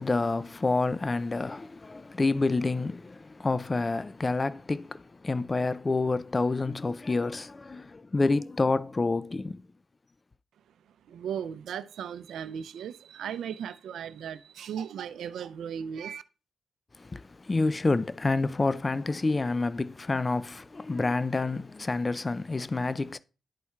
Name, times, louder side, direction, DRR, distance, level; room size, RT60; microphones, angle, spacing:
voice 1, 0.0-9.6 17.0-23.2, left 3 dB, 30° left, 0.3 m, -28 dB
voice 2, 11.1-16.2, right 8 dB, 85° right, 0.4 m, -36 dB
12.0 x 4.2 x 2.3 m
cardioid pair, 70°, 0 cm